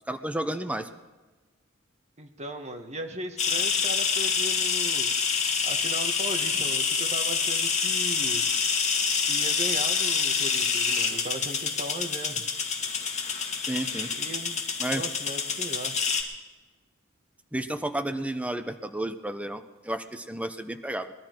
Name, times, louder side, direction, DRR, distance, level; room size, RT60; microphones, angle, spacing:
voice 1, 0.1-0.9 13.7-14.1 14.8-15.0 17.5-21.1, right 1 dB, 5° right, 8 dB, 0.7 m, -32 dB
voice 2, 2.2-5.1 5.6-8.4 9.3-12.4 14.2-14.6 14.9-16.0, right 1 dB, 35° right, 5 dB, 1.4 m, -37 dB
sound 1, 3.4-16.2, left 5 dB, 35° left, 1.9 m, -27 dB
21.0 x 12.5 x 4.6 m, 1.2 s
head